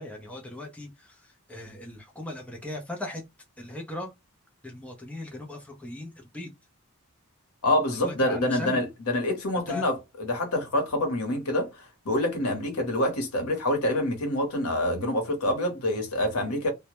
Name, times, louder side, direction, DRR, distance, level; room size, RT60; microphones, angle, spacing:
voice 1, 0.0-3.2 3.6-4.1 4.6-6.5 7.9-8.8 9.7-9.8, left 2 dB, 5° left, 0.5 m, -38 dB
voice 2, 7.6-16.7, left 1 dB, 85° left, 0.9 m, -26 dB
2.1 x 2.0 x 2.8 m
head